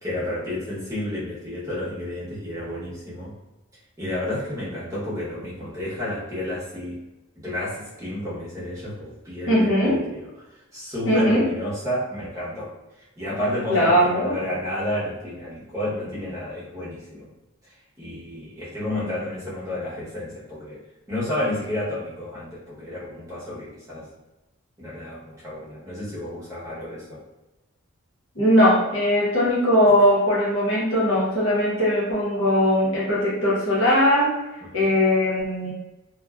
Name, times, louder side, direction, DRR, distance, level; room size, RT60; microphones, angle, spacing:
voice 1, 0.0-3.3 4.0-7.0 7.3-10.2 10.7-12.7 13.2-17.3 18.0-20.8 21.1-24.1 24.8-27.2 34.6-34.7, left 1 dB, 15° right, -9 dB, 0.8 m, -31 dB
voice 2, 9.5-10.0 11.1-11.5 13.7-14.3 28.4-34.3 34.7-35.7, equal, 60° left, -6 dB, 0.8 m, -20 dB
2.5 x 2.2 x 2.2 m, 1.0 s
head